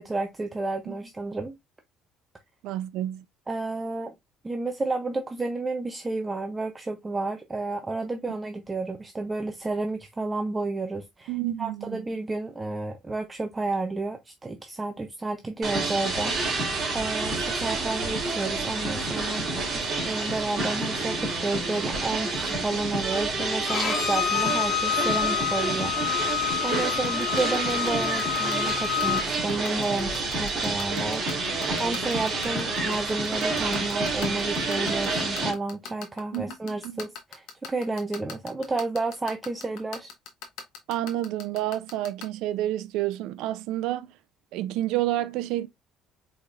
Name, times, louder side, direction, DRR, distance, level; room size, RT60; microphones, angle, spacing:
voice 1, 0.0-1.5 3.5-4.1 4.4-11.3 11.6-16.3 16.9-19.5 20.0-25.9 26.3-40.1, right 3 dB, 15° right, 0.5 m, -31 dB
voice 2, 2.6-3.2 8.3-8.4 11.3-12.0 36.3-37.0 40.9-44.1 44.5-45.7, right 14 dB, 85° right, 0.5 m, -29 dB
sound 1, 15.6-35.5, right 3 dB, 35° right, 2.8 m, -29 dB
Bowed string instrument, 23.7-29.2, left 10 dB, 40° left, 1.0 m, -28 dB
sound 2, 26.7-42.2, left 7 dB, 70° left, 1.4 m, -39 dB
4.8 x 4.1 x 2.4 m
cardioid pair, 150°, 0 cm